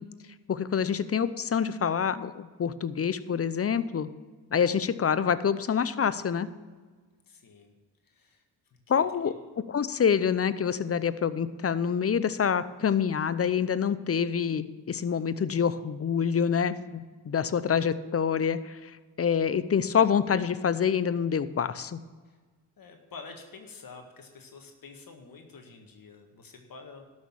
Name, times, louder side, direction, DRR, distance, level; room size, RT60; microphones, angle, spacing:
voice 1, 0.5-4.1 4.5-6.5 8.9-18.9 19.2-22.0, left 7 dB, 30° left, 15 dB, 0.7 m, -26 dB
voice 2, 7.3-7.7 8.1-8.4 8.9-9.2 22.8-27.1, left 4 dB, 50° left, 4 dB, 1.7 m, -48 dB
12.5 x 6.3 x 7.1 m, 1.4 s
supercardioid pair, 60°, 44 cm